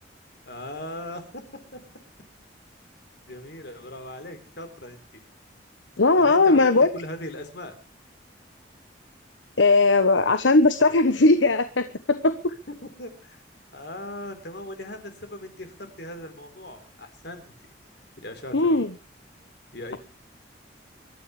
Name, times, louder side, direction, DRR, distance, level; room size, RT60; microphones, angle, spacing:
voice 1, 0.4-1.4 1.7-1.8 3.2-5.0 6.2-7.7 12.7-13.4 13.7-17.5 18.2-18.8 19.7-20.0, left 1 dB, 60° left, 7 dB, 4.0 m, -38 dB
voice 2, 6.0-6.9 9.6-12.4 18.5-18.9, left 3 dB, 85° left, 11 dB, 1.1 m, -19 dB
25.5 x 13.0 x 3.3 m, 0.34 s
head